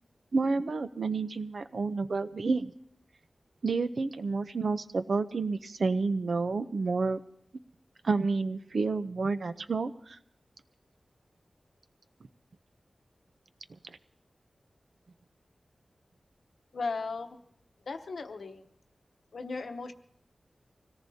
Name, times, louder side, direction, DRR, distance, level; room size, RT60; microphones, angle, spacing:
voice 1, 0.3-2.7 3.6-7.2 8.0-10.2, right 4 dB, 70° right, 11 dB, 0.6 m, -30 dB
voice 2, 16.7-17.4 17.8-18.7 19.3-19.9, left 4 dB, 85° left, 7 dB, 0.9 m, -36 dB
24.5 x 17.5 x 2.8 m, 0.69 s
wide cardioid pair, 100°, 0 cm